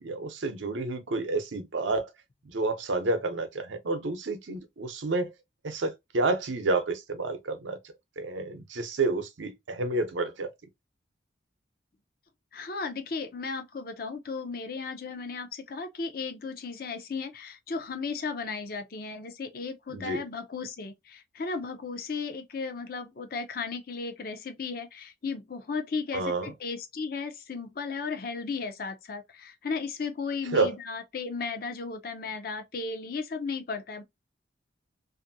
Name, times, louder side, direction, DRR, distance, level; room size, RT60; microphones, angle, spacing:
voice 1, 0.0-2.1 2.5-5.3 5.6-7.8 8.2-10.5 19.9-20.2 26.1-26.5 30.5-30.7, right 3 dB, 80° right, 0.7 m, -29 dB
voice 2, 12.5-34.0, left 4 dB, 50° left, 0.5 m, -35 dB
2.6 x 2.6 x 2.6 m
head